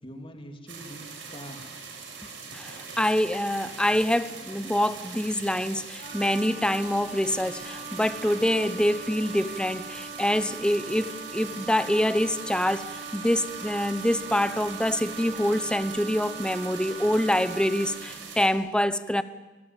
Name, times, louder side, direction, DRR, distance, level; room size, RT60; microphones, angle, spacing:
voice 1, 0.0-1.8 2.7-3.0, equal, 30° left, 3.1 m, -44 dB
sound 1, 0.7-18.5, right 5 dB, 70° right, 6.0 m, -42 dB
voice 2, 2.5-19.2, left 1 dB, 5° left, 0.9 m, -26 dB
Wind instrument woodwind instrument, 6.0-18.1, right 4 dB, 40° right, 4.2 m, -41 dB
28.0 x 21.0 x 9.1 m
head